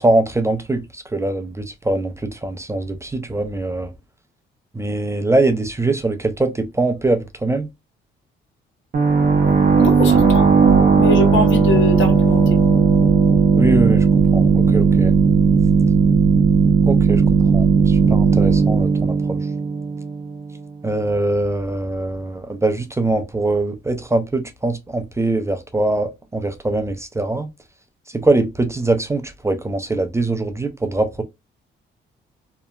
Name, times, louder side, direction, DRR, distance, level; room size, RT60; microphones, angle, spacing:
voice 1, 0.0-3.9 4.7-7.7 13.5-15.1 16.9-17.2 17.5-19.4 20.8-27.5 28.1-31.2, right 2 dB, 15° right, 0.5 m, -22 dB
sound 1, 8.9-20.4, right 5 dB, 45° right, 0.8 m, -15 dB
voice 2, 9.8-10.5 11.0-12.6, left 2 dB, 75° left, 1.0 m, -23 dB
2.9 x 2.1 x 2.4 m
cardioid pair, 90°, 20 cm